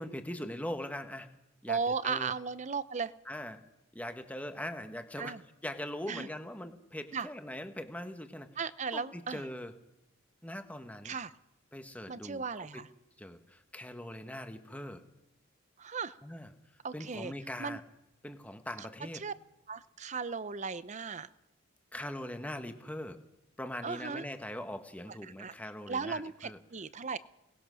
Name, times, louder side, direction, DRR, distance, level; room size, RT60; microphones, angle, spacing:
voice 1, 0.0-1.3 1.6-2.3 3.2-3.6 3.9-8.6 8.9-9.7 10.4-11.1 11.7-12.4 12.7-12.8 13.2-15.0 16.2-16.5 16.9-17.8 18.2-19.2 21.9-23.2 23.6-26.6, left 1 dB, 5° left, 7 dB, 1.3 m, -41 dB
voice 2, 1.7-3.1 5.2-5.4 6.1-6.3 7.1-7.3 8.6-9.4 11.0-11.3 12.1-12.9 15.8-16.2 16.8-17.3 17.6-17.8 18.8-18.9 19.1-19.3 19.7-21.3 23.8-24.3 25.4-25.5 25.9-27.2, right 5 dB, 35° right, 16 dB, 0.7 m, -36 dB
23.0 x 19.5 x 6.3 m, 0.92 s
head